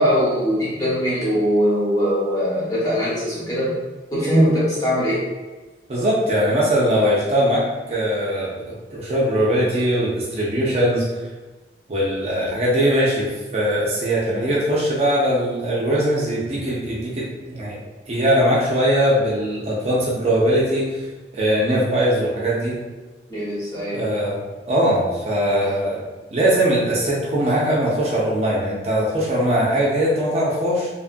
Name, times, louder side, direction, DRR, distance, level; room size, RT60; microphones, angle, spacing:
voice 1, 0.0-3.7 4.1-5.2 23.3-24.0 25.6-25.7, equal, 20° left, -9 dB, 1.0 m, -21 dB
voice 2, 5.9-11.0 11.9-17.8 18.1-21.0 21.3-22.8 23.9-24.4 24.7-30.9, equal, 35° right, -5 dB, 0.5 m, -21 dB
2.8 x 2.4 x 2.5 m, 1.2 s
head